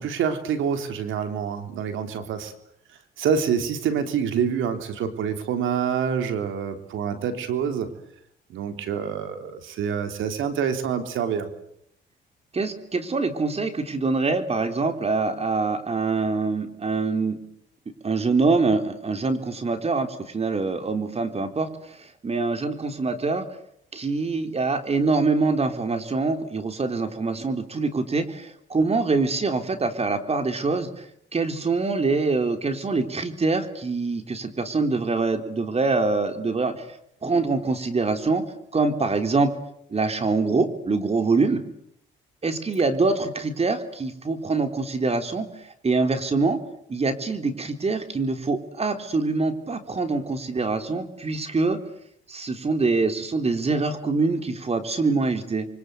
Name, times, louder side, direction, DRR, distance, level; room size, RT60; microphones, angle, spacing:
voice 1, 0.0-2.5 3.2-7.9 8.5-11.5, right 7 dB, 80° right, 7 dB, 3.6 m, -26 dB
voice 2, 12.5-17.4 18.0-23.5 23.9-31.1 31.3-38.4 38.7-39.5 39.9-41.6 42.4-46.6 46.9-51.8 52.3-55.7, right 3 dB, 30° right, 7 dB, 3.8 m, -24 dB
30.0 x 24.0 x 8.1 m, 0.71 s
cardioid pair, 90°, 20 cm